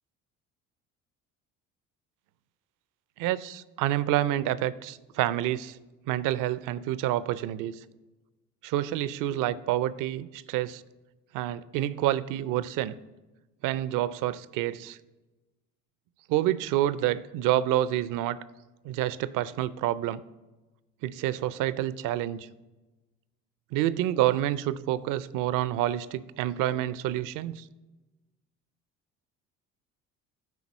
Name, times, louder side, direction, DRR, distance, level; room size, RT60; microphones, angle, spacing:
voice 1, 3.2-5.8 6.1-7.8 8.6-10.8 11.3-12.9 13.6-15.0 16.3-18.4 18.8-20.2 21.0-22.5 23.7-27.6, right 13 dB, 55° right, 17 dB, 0.5 m, -28 dB
9.8 x 4.0 x 5.2 m, 1.1 s
hypercardioid pair, 60°, 39 cm